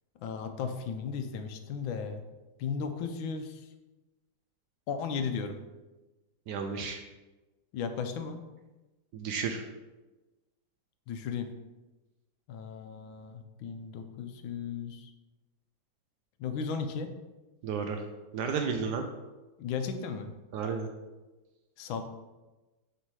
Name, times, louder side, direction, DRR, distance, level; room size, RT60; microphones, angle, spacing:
voice 1, 0.2-2.2 2.6-3.7 4.9-5.6 7.7-8.4 11.1-11.5 12.5-15.1 16.4-17.1 19.6-20.3 21.8-22.0, left 6 dB, 90° left, 8 dB, 1.4 m, -35 dB
voice 2, 6.5-7.0 9.1-9.6 17.6-18.0 18.3-19.0 20.5-20.9, right 5 dB, 75° right, 5 dB, 1.0 m, -32 dB
6.7 x 3.7 x 4.6 m, 1.1 s
omnidirectional pair, 2.1 m